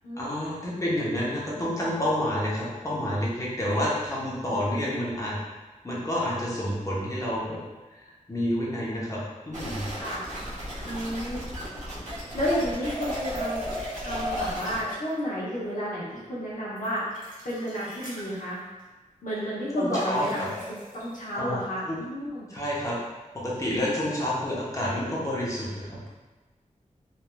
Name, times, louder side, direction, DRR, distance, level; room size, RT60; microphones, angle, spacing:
voice 1, 0.2-5.4 5.8-7.6 7.9-9.2 9.4-9.9 19.8-20.5 21.3-22.0 22.5-23.0 23.4-26.1, left 1 dB, 25° left, -6 dB, 0.8 m, -29 dB
sound 1, 9.5-14.9, equal, 65° right, 0.9 m, -37 dB
voice 2, 10.8-11.5 12.3-13.6 14.0-17.0 17.4-18.6 19.2-22.5, equal, 80° left, -7 dB, 0.8 m, -31 dB
sound 2, 12.8-14.9 16.8-18.3 19.9-21.0, equal, 85° right, 1.5 m, -35 dB
3.2 x 2.6 x 2.2 m, 1.2 s
wide cardioid pair, 85°, 13 cm